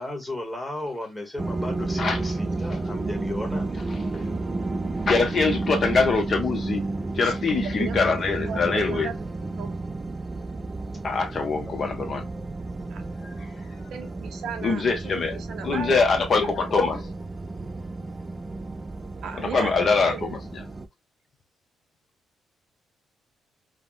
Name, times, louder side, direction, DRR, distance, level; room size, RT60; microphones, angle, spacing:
voice 1, 0.0-3.7 11.6-11.7, left 1 dB, 5° left, 1.2 m, -34 dB
sound 1, 1.4-20.9, right 2 dB, 25° right, 0.3 m, -32 dB
voice 2, 5.0-6.9 7.1-9.1 11.0-12.3 13.2-13.7 14.6-17.1 19.3-20.7, left 4 dB, 50° left, 0.8 m, -24 dB
voice 3, 7.1-8.0 8.5-9.8 12.9-13.0 13.9-16.0 19.2-20.3, right 7 dB, 75° right, 0.6 m, -37 dB
3.5 x 2.1 x 2.4 m
cardioid pair, 90°, 0 cm